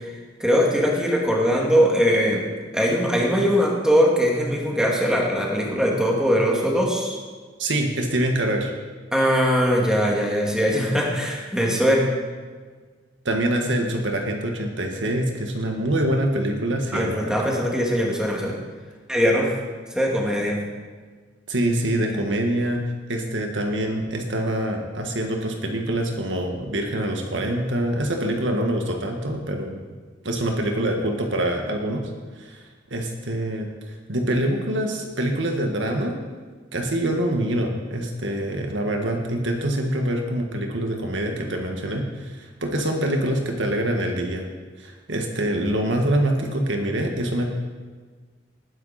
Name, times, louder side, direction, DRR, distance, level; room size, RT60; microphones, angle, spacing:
voice 1, 0.4-2.4 2.7-7.2 9.1-12.0 16.9-18.6 19.1-19.5 19.9-20.6, equal, 5° right, -2 dB, 2.4 m, -21 dB
voice 2, 7.6-8.7 13.3-17.4 21.5-22.8 23.1-29.8 30.2-32.0 32.5-32.6 32.9-33.7 34.1-36.2 36.7-44.4 44.8-47.5, right 1 dB, 75° right, 2 dB, 1.8 m, -25 dB
19.5 x 10.0 x 4.3 m, 1.5 s
head